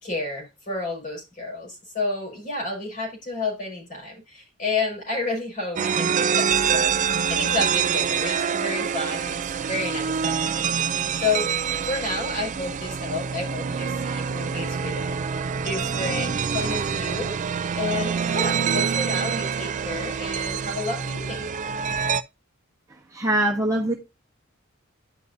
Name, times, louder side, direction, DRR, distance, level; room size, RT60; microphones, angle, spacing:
voice 1, 0.0-10.9 11.2-15.1 15.6-17.4 17.7-21.5, left 3 dB, 40° left, 4.9 m, -31 dB
sound 1, 5.8-22.2, right 7 dB, 35° right, 0.3 m, -26 dB
voice 2, 23.1-23.9, right 1 dB, 15° right, 1.2 m, -22 dB
11.0 x 5.5 x 2.6 m
head